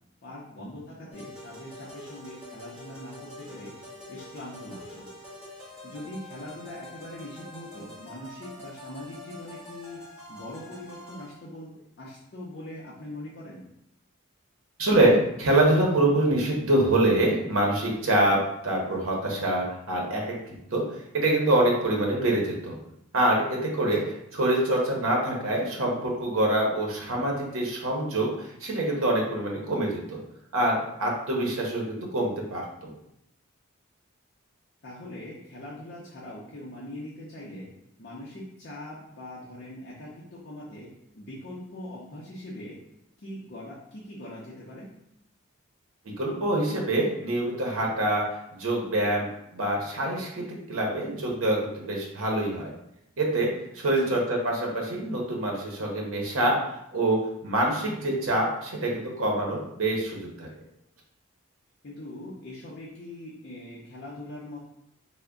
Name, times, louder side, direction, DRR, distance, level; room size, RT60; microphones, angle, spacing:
voice 1, 0.2-3.7 4.1-5.1 5.8-10.0 10.3-11.7 12.0-13.6 24.0-24.1 34.8-37.7 38.0-40.9 41.1-42.8 43.2-44.9 54.0-54.1 61.8-64.6, left 1 dB, 50° left, -5 dB, 0.6 m, -42 dB
sound 1, 1.1-11.4, left 1 dB, 5° right, 1.0 m, -45 dB
voice 2, 14.8-22.8 23.1-30.2 30.5-32.9 46.0-49.3 49.5-52.7 53.2-60.5, right 1 dB, 70° right, -1 dB, 0.8 m, -25 dB
3.3 x 2.1 x 3.6 m, 0.78 s
head